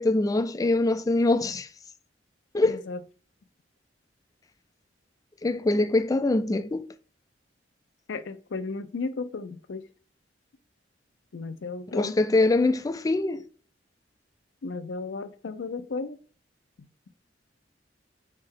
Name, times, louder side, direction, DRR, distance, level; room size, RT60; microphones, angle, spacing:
voice 1, 0.0-1.7 2.5-2.8 5.4-6.9 11.9-13.5, left 2 dB, 20° left, 0.3 m, -23 dB
voice 2, 2.7-3.0 8.1-9.8 11.3-12.1 14.6-16.2, left 4 dB, 75° left, 0.5 m, -34 dB
4.4 x 3.3 x 3.6 m
head